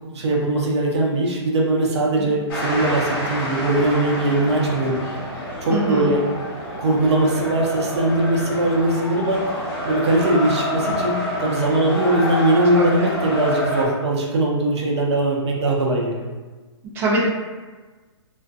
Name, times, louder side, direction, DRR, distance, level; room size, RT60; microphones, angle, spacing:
voice 1, 0.0-5.0 5.6-6.2 6.8-9.5 9.8-16.3, right 1 dB, 70° right, -2 dB, 0.7 m, -20 dB
sound 1, 2.5-13.8, left 1 dB, 55° left, 1.0 m, -28 dB
voice 2, 5.7-6.1 12.8-13.1 16.9-17.3, right 2 dB, 15° right, -4 dB, 0.4 m, -22 dB
2.4 x 2.3 x 2.4 m, 1.3 s
hypercardioid pair, 155°, 15 cm